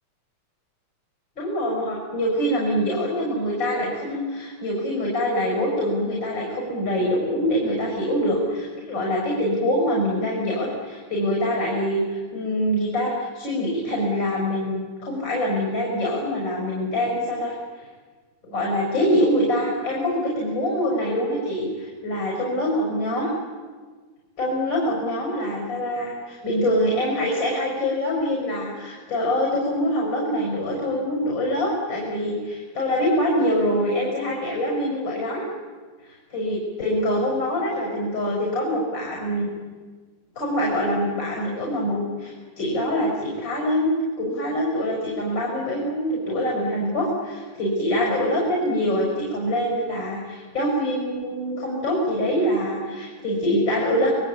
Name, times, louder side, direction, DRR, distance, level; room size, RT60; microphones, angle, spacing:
voice 1, 1.4-17.5 18.5-23.3 24.4-35.4 36.0-39.5 40.4-54.1, equal, 35° left, -1 dB, 7.5 m, -24 dB
28.5 x 23.0 x 8.7 m, 1.4 s
omnidirectional pair, 3.3 m